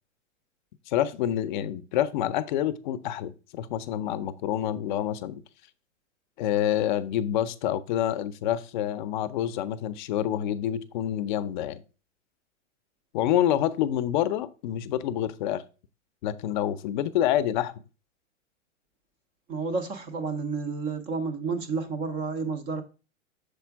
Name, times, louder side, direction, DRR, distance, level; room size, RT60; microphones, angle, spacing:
voice 1, 0.9-5.4 6.4-11.8 13.1-15.6 16.2-17.7, left 11 dB, 40° left, 0.6 m, -27 dB
voice 2, 19.5-22.8, right 4 dB, 15° right, 0.4 m, -30 dB
6.8 x 4.3 x 4.5 m
hypercardioid pair, 145°, 39 cm